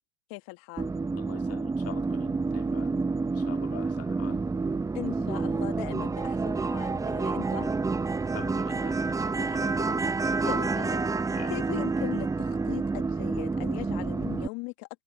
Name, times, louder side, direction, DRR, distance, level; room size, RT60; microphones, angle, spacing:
voice 1, 0.3-0.9 4.9-7.7 9.4-11.1 11.5-14.9, left 26 dB, 45° left, 1.7 m, -39 dB
sound 1, 0.8-14.5, right 4 dB, 5° right, 0.7 m, -29 dB
voice 2, 1.1-3.0 3.3-4.4 8.3-9.6 11.3-11.5, left 12 dB, 30° left, 2.0 m, -45 dB
hypercardioid pair, 95°, 50 cm